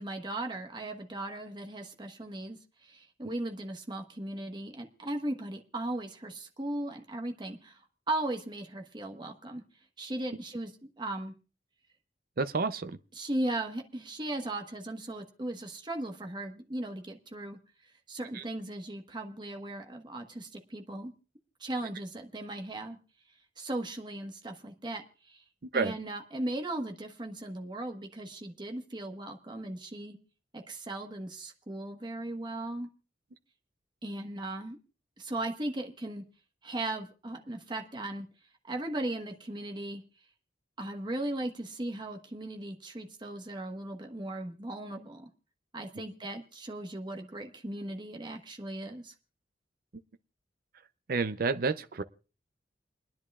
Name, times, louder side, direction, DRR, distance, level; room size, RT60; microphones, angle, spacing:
voice 1, 0.0-7.8 8.1-9.6 10.0-10.7 11.0-11.3 13.1-17.6 18.1-21.1 21.6-23.0 23.6-25.4 25.7-30.2 30.5-32.9 34.0-34.8 35.2-36.2 36.6-38.3 38.7-40.0 40.8-45.3 45.7-49.1, right 1 dB, 25° right, 1.3 m, -37 dB
voice 2, 12.4-13.0 18.3-18.4 25.7-26.0 51.1-52.0, right 4 dB, 55° right, 0.6 m, -30 dB
29.5 x 10.5 x 2.4 m
head